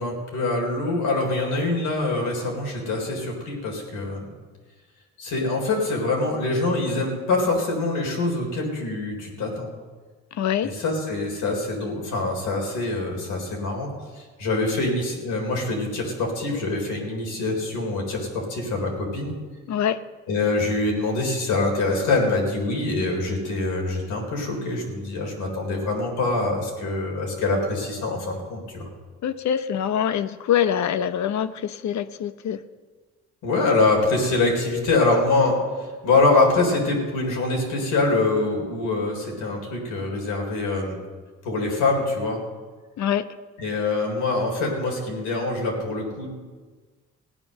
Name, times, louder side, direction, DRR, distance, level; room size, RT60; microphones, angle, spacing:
voice 1, 0.0-4.3 5.2-9.7 10.6-13.9 14.2-19.3 20.3-28.9 33.4-41.0 41.4-42.4 43.6-46.3, left 2 dB, 90° left, 0 dB, 3.9 m, -24 dB
voice 2, 10.3-10.7 19.7-20.0 29.2-32.6 43.0-43.3, left 9 dB, 65° left, 13 dB, 0.9 m, -24 dB
16.5 x 9.9 x 6.6 m, 1.4 s
cardioid pair, 90°, 30 cm